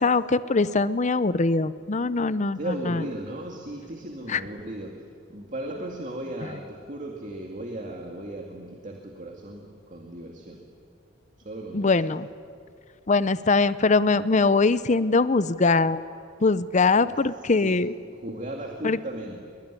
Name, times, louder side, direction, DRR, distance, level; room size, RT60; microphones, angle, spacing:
voice 1, 0.0-2.6 2.9-3.0 4.3-4.4 11.7-12.3 13.1-16.0 16.4-17.9 18.8-19.0, left 3 dB, 40° left, 15 dB, 0.7 m, -22 dB
voice 2, 2.5-5.0 5.3-10.7 11.4-12.0 17.0-17.2 17.6-17.8 18.1-19.4, right 1 dB, 40° right, 1 dB, 2.3 m, -36 dB
23.5 x 22.0 x 9.9 m, 2.3 s
head